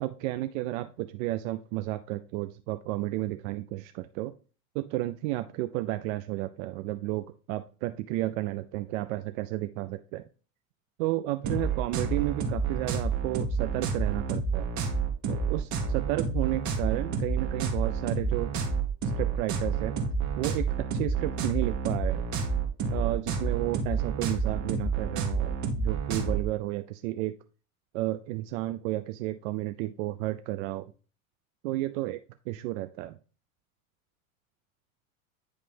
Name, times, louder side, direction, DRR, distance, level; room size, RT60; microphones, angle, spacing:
voice 1, 0.0-4.3 4.7-10.2 11.0-14.7 15.3-18.5 19.0-20.0 20.4-22.2 22.9-27.4 27.9-30.9 31.6-32.2 32.5-33.2, right 16 dB, 65° right, 10 dB, 0.5 m, -32 dB
sound 1, 11.4-26.4, right 5 dB, 40° right, 1.3 m, -29 dB
9.7 x 3.3 x 3.4 m, 0.36 s
hypercardioid pair, 95°, 42 cm